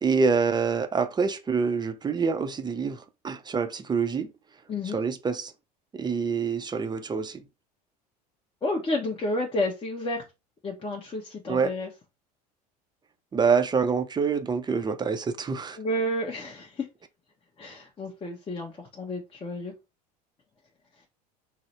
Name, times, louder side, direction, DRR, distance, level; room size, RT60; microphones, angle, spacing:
voice 1, 0.0-4.3 4.9-5.5 5.9-7.4 11.5-11.7 13.3-15.8, right 5 dB, 20° right, 0.5 m, -26 dB
voice 2, 4.7-5.0 8.6-10.2 10.6-11.9 15.8-16.9 17.6-19.7, left 1 dB, 25° left, 1.0 m, -31 dB
3.8 x 2.0 x 4.4 m
hypercardioid pair, 75°, 21 cm